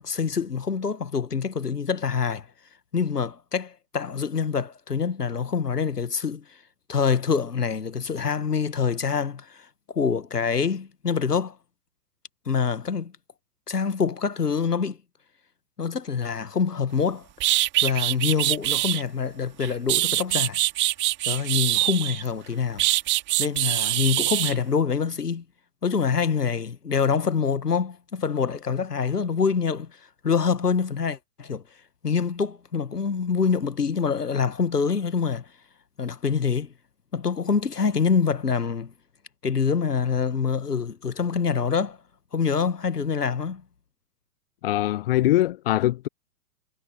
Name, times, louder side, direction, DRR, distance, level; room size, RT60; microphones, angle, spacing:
voice 1, 0.0-2.5 2.9-6.4 6.9-11.6 12.5-13.1 13.7-15.0 15.8-17.3 17.8-20.6 21.3-22.8 23.4-25.4 25.8-29.9 30.2-31.6 32.0-35.5 36.0-36.7 37.1-38.9 39.4-42.0 42.3-43.6, left 6 dB, 80° left, 1.4 m, -25 dB
sound 1, 17.0-17.1 17.4-19.0 19.6-22.3 22.8-24.5, right 16 dB, 25° right, 2.3 m, -24 dB
voice 2, 44.6-46.1, left 14 dB, 35° left, 0.9 m, -22 dB
figure-of-eight pair, 110°, 47 cm